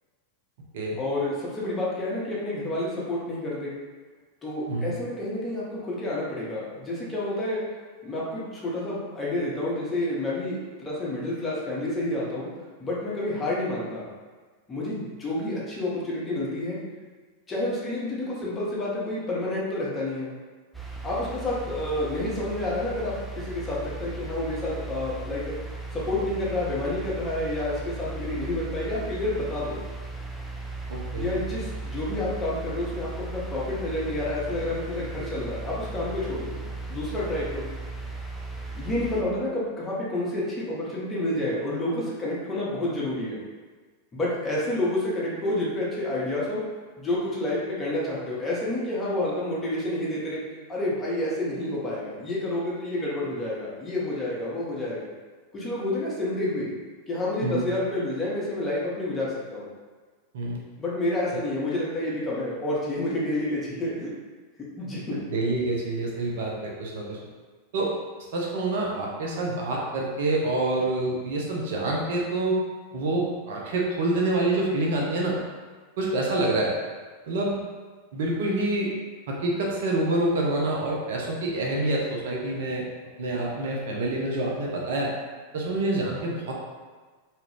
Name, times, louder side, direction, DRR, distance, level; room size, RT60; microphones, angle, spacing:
voice 1, 1.0-3.7 4.4-7.6 8.0-12.5 12.8-14.1 14.7-16.8 17.5-20.3 21.0-25.6 25.9-29.8 31.2-36.6 36.9-37.7 38.8-43.4 44.1-46.6 47.0-50.4 50.7-55.1 55.5-56.7 57.1-59.7 60.8-64.1 64.8-65.2, left 1 dB, 20° left, -6 dB, 0.9 m, -29 dB
sound 1, 20.7-39.2, right 3 dB, 5° right, 0.4 m, -36 dB
voice 2, 30.9-31.3 57.4-57.7 60.3-60.6 65.1-67.2 67.7-67.9 68.3-72.6 72.9-75.4 76.0-76.8 77.3-77.6 78.1-78.9 79.3-82.8 83.2-85.1 85.5-86.5, right 2 dB, 55° right, -2 dB, 0.5 m, -27 dB
2.8 x 2.4 x 3.3 m, 1.4 s
figure-of-eight pair, 90°, 0 cm